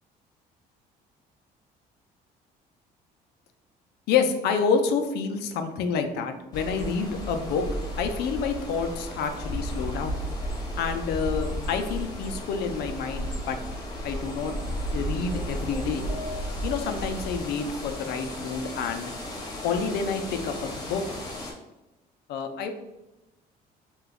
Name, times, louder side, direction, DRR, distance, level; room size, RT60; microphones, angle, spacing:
voice 1, 4.1-7.7 8.0-10.2 10.8-13.6 14.0-14.5 14.9-16.1 16.6-19.1 19.6-21.0 22.3-22.7, left 5 dB, 75° left, 7 dB, 0.5 m, -28 dB
sound 1, 6.5-21.5, equal, 20° left, 0.9 m, -34 dB
sound 2, 14.9-17.0, equal, 40° right, 0.5 m, -41 dB
2.9 x 2.3 x 3.4 m, 0.99 s
cardioid pair, 110°, 17 cm